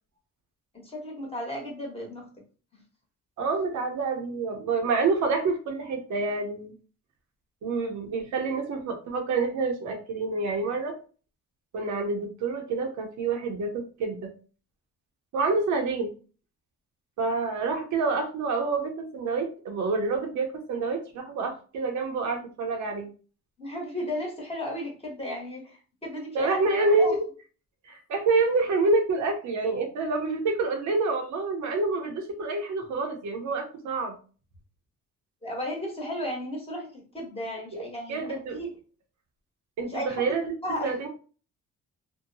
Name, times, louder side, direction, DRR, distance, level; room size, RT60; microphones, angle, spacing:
voice 1, 0.7-2.3 2.7-2.8 23.6-26.7 27.0-27.1 35.4-38.7 39.8-40.2 40.6-40.9, left 1 dB, 20° left, -2 dB, 1.3 m, -34 dB
voice 2, 3.4-6.7 7.6-10.9 11.7-14.3 15.3-16.1 17.2-23.1 26.3-27.2 27.8-34.1 37.7-37.8 38.1-38.6 39.8-40.4 40.8-41.1, right 3 dB, 70° right, 3 dB, 0.8 m, -27 dB
2.7 x 2.2 x 2.6 m, 0.37 s
cardioid pair, 90°, 30 cm